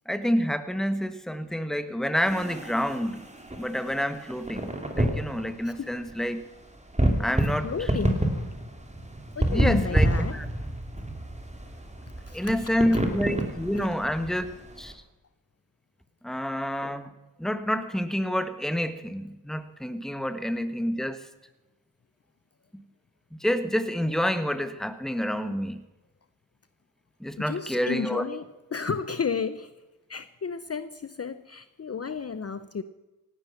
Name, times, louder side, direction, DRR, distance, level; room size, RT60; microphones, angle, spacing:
voice 1, 0.1-3.2 3.6-6.4 7.2-7.7 9.4-10.5 12.3-14.5 14.8-14.9 16.2-17.1 17.4-21.2 22.7-22.8 23.4-25.8 27.2-28.2, equal, ahead, 11 dB, 1.3 m, -28 dB
sound 1, 2.2-14.9, right 1 dB, 15° right, 2.7 m, -29 dB
voice 2, 7.6-8.3 9.3-10.4 12.3-13.0 13.7-13.9 27.4-28.4 28.7-29.7 30.1-32.8, left 6 dB, 35° left, 13 dB, 0.7 m, -32 dB
17.5 x 12.0 x 5.8 m, 1.1 s
cardioid pair, 50°, 41 cm